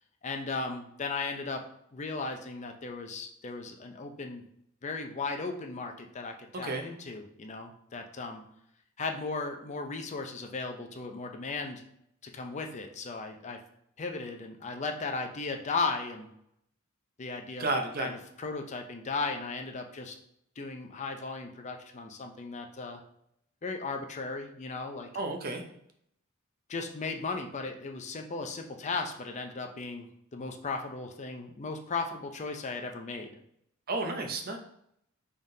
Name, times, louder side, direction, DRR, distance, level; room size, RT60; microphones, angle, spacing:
voice 1, 0.2-1.7 1.9-4.4 4.8-8.4 9.0-11.8 12.2-13.6 14.0-16.3 17.2-17.7 18.0-20.1 20.6-23.0 23.6-25.1 26.7-33.4, left 3 dB, 35° left, 4 dB, 0.5 m, -36 dB
voice 2, 6.5-6.8 17.6-18.2 25.1-25.6 33.9-34.6, right 2 dB, 45° right, 4 dB, 0.6 m, -32 dB
5.5 x 3.5 x 2.7 m, 0.73 s
head